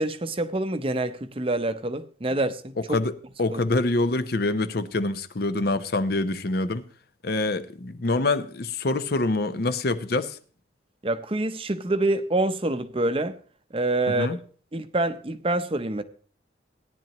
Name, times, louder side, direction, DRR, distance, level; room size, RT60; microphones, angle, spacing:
voice 1, 0.0-3.0 3.5-3.6 11.0-13.4 13.7-14.4 14.7-16.0, right 2 dB, 30° right, 0.7 m, -26 dB
voice 2, 2.9-6.8 7.2-10.4 14.1-14.4, left 2 dB, 55° left, 0.7 m, -25 dB
17.0 x 10.5 x 3.0 m
head